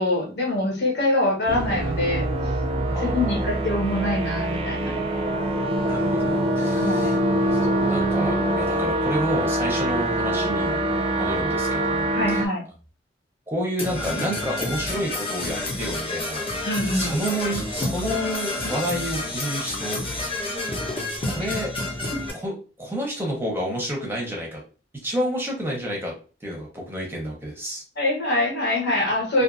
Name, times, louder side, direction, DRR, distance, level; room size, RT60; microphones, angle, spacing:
voice 1, 0.0-2.3 3.0-5.0 6.7-7.2 12.1-12.6 16.6-17.2 21.4-21.5 22.1-22.2 28.0-29.4, left 1 dB, 65° left, -1 dB, 1.1 m, -24 dB
sound 1, 1.5-12.5, right 1 dB, 30° right, 0.3 m, -24 dB
voice 2, 2.9-3.5 5.9-10.8 11.2-12.4 13.5-16.4 16.9-20.0 21.3-21.7 22.3-24.6 25.0-26.1 26.4-27.8, equal, 15° right, -1 dB, 0.7 m, -30 dB
Percussion / Brass instrument, 13.8-22.3, left 2 dB, 30° left, 0.8 m, -29 dB
2.5 x 2.5 x 2.5 m, 0.36 s
head